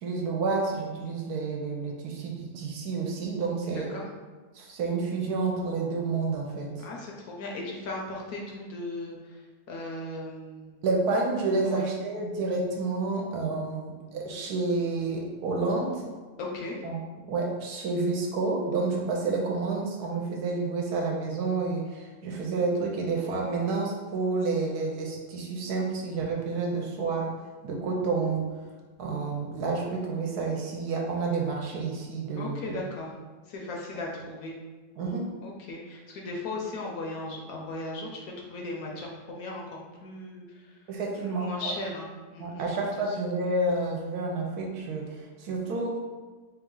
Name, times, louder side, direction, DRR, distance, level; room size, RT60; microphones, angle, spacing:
voice 1, 0.0-3.9 4.5-6.8 10.8-16.0 16.8-17.0 17.3-27.3 27.6-28.5 29.0-32.7 35.0-35.3 40.9-41.7 42.4-46.0, right 3 dB, 70° right, -1 dB, 1.1 m, -29 dB
voice 2, 6.8-9.4 9.7-10.8 11.7-11.8 16.4-16.8 32.4-33.1 33.5-34.5 35.4-40.7 41.2-42.6 43.1-43.2, left 2 dB, 70° left, -1 dB, 1.0 m, -37 dB
3.1 x 3.0 x 3.7 m, 1.3 s
omnidirectional pair, 1.8 m